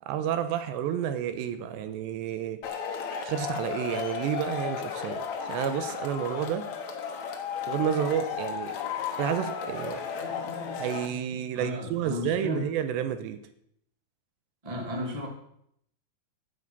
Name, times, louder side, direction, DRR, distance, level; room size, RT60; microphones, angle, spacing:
voice 1, 0.0-2.6 3.2-6.7 7.7-8.7 9.2-10.5 10.8-13.4, right 9 dB, 85° right, 10 dB, 3.1 m, -30 dB
Male speech man speaking / Shout / Clapping, 2.6-11.1, left 6 dB, 60° left, 1.9 m, -34 dB
voice 2, 11.5-12.6 14.6-15.3, left 2 dB, 15° right, 0 dB, 1.7 m, -34 dB
15.5 x 8.2 x 5.5 m, 0.72 s
omnidirectional pair, 5.0 m